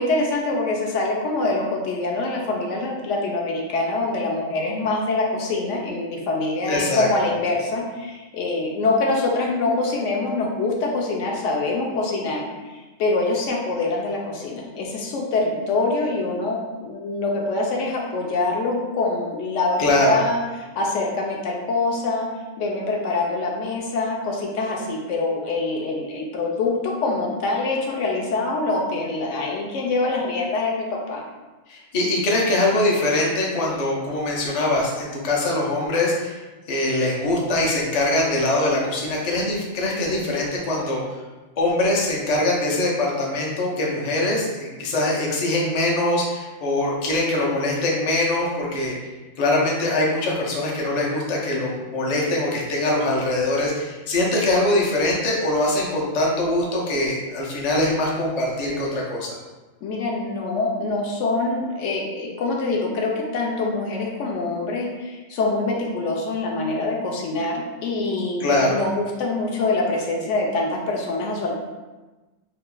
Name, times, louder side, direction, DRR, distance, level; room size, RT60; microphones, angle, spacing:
voice 1, 0.0-22.3 22.6-31.2 59.8-71.5, left 3 dB, 70° left, -1 dB, 0.9 m, -25 dB
voice 2, 6.7-7.1 19.8-20.2 31.7-36.4 36.7-41.0 41.6-48.9 49.4-59.4 68.4-68.8, left 1 dB, 45° left, -3 dB, 0.5 m, -22 dB
2.7 x 2.3 x 3.7 m, 1.2 s
omnidirectional pair, 1.4 m